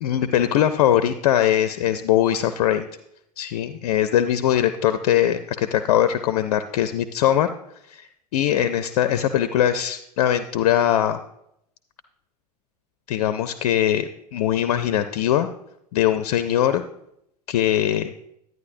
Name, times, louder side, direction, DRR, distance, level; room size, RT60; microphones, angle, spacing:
voice 1, 0.0-2.9 3.4-7.5 7.9-8.1 8.3-11.2 13.1-15.5 15.9-16.8 17.5-18.1, left 11 dB, 60° left, 11 dB, 0.5 m, -21 dB
11.5 x 9.3 x 2.7 m, 0.77 s
figure-of-eight pair, 85°, 20 cm